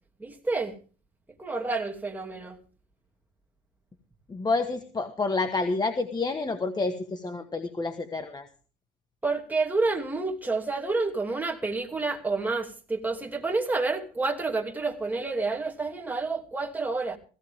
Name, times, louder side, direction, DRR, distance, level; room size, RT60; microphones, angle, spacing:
voice 1, 0.2-0.8 1.4-2.6 9.2-17.2, right 3 dB, 10° right, 2.6 m, -29 dB
voice 2, 4.3-8.5, left 3 dB, 25° left, 1.4 m, -29 dB
16.5 x 16.0 x 3.6 m
cardioid pair, 110°, 17 cm